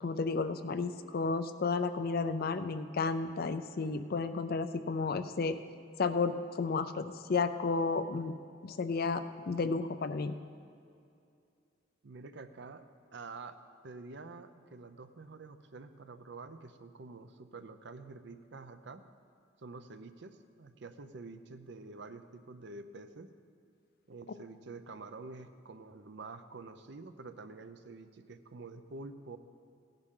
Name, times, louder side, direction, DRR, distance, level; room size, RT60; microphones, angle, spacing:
voice 1, 0.0-5.6 6.0-8.4 8.6-10.3, left 4 dB, 50° left, 11 dB, 0.5 m, -32 dB
voice 2, 12.0-12.8 13.1-13.6 13.8-19.0 19.6-23.3 24.1-29.4, right 3 dB, 65° right, 10 dB, 0.6 m, -48 dB
16.0 x 10.5 x 3.8 m, 2.4 s
head